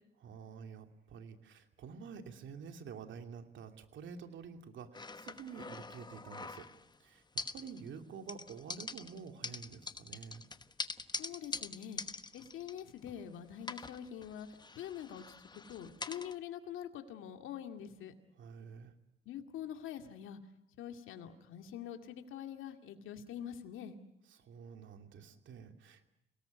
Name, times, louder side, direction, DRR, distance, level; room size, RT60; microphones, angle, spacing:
voice 1, 0.2-6.6 7.0-7.2 7.5-10.4 18.4-18.9 24.3-26.1, right 6 dB, 70° right, 6 dB, 2.8 m, -49 dB
sound 1, 4.9-7.0 7.4-8.0 8.3-13.3 13.6-16.4, left 3 dB, 20° left, 1.0 m, -44 dB
voice 2, 11.2-12.0 12.3-14.5 14.8-18.1 19.3-20.4 20.8-24.0, left 9 dB, 85° left, 6 dB, 2.3 m, -45 dB
28.0 x 18.5 x 9.4 m, 0.83 s
cardioid pair, 90°, 20 cm